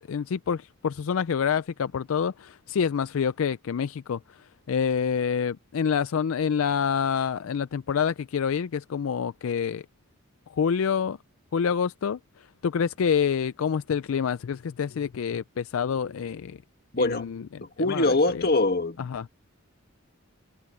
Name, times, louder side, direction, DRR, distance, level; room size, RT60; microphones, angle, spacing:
voice 1, 0.0-9.9 10.5-11.2 11.5-16.6 17.0-18.4 19.0-19.3, left 7 dB, 75° left, 0.4 m, -27 dB
voice 2, 16.9-17.3 17.6-19.1, left 2 dB, 45° left, 1.9 m, -23 dB
head